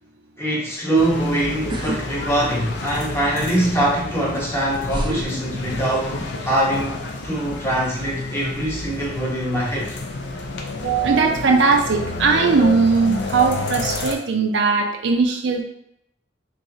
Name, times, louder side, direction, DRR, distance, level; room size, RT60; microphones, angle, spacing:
voice 1, 0.4-6.2 6.4-9.9, right 1 dB, 15° left, -4 dB, 0.9 m, -23 dB
sound 1, 0.9-14.1, left 2 dB, 70° left, 0.5 m, -30 dB
sound 2, 1.7-2.0 2.4-3.0 4.0-4.1 4.9-6.3 6.6-7.0, right 1 dB, 25° right, 0.4 m, -29 dB
voice 2, 10.8-15.6, right 4 dB, 80° right, 3 dB, 0.5 m, -19 dB
3.8 x 3.0 x 2.7 m, 0.74 s
head